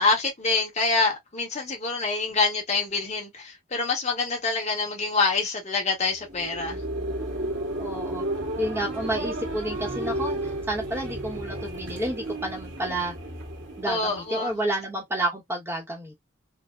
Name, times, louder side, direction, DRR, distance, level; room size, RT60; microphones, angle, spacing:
voice 1, 0.0-6.8 13.9-14.6, left 4 dB, 35° left, 1.2 m, -26 dB
sound 1, 6.1-14.7, right 1 dB, 85° right, 1.5 m, -33 dB
voice 2, 7.8-8.2 8.6-13.1 13.8-16.2, right 1 dB, 10° right, 0.9 m, -30 dB
4.3 x 2.1 x 2.2 m
head